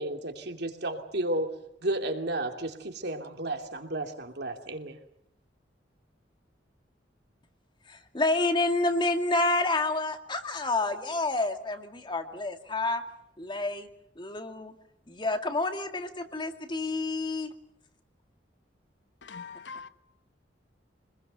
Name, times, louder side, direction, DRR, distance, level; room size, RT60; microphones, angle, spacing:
voice 1, 0.0-1.5 1.8-5.0, right 1 dB, 65° right, 2.8 m, -32 dB
voice 2, 7.9-13.0 13.4-13.9 14.2-14.7 15.1-17.5, left 2 dB, 25° left, 2.1 m, -29 dB
voice 3, 19.2-19.9, left 5 dB, 75° left, 1.1 m, -42 dB
26.0 x 21.0 x 6.8 m
head